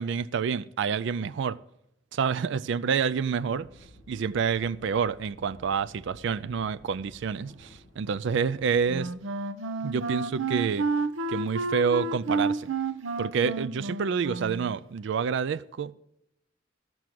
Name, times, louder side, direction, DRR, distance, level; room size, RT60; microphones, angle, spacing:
voice 1, 0.0-1.6 2.1-3.7 4.1-9.1 9.8-10.9 11.3-12.7 13.2-15.9, right 6 dB, 65° right, 0.4 m, -28 dB
sound 1, 3.4-9.1, left 1 dB, 20° right, 4.5 m, -54 dB
Wind instrument woodwind instrument, 8.9-14.8, right 3 dB, 85° right, 0.7 m, -30 dB
13.0 x 6.1 x 7.6 m
head